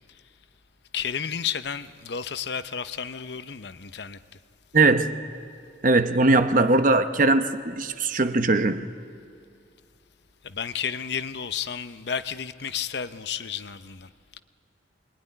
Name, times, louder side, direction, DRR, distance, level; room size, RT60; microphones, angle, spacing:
voice 1, 0.9-4.2 10.4-14.1, left 7 dB, 60° left, 0.7 m, -32 dB
voice 2, 4.7-5.1 5.8-8.8, right 2 dB, 45° right, 0.9 m, -20 dB
24.0 x 21.0 x 9.9 m
head